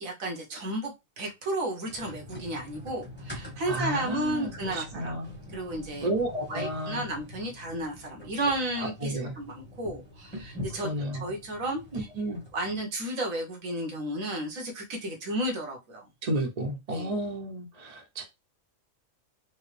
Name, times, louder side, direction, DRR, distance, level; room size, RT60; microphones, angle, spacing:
voice 1, 0.0-5.1 5.5-6.1 6.5-10.9 11.2-12.1 12.5-16.0 16.9-17.1, right 1 dB, 90° right, 1.5 m, -33 dB
sound 1, 1.9-12.8, left 1 dB, 10° left, 1.0 m, -44 dB
voice 2, 3.7-5.3 6.0-7.1 8.8-9.3 10.8-11.3 11.9-12.4 16.2-18.2, right 1 dB, 40° right, 0.7 m, -32 dB
4.5 x 2.0 x 3.2 m
omnidirectional pair, 1.4 m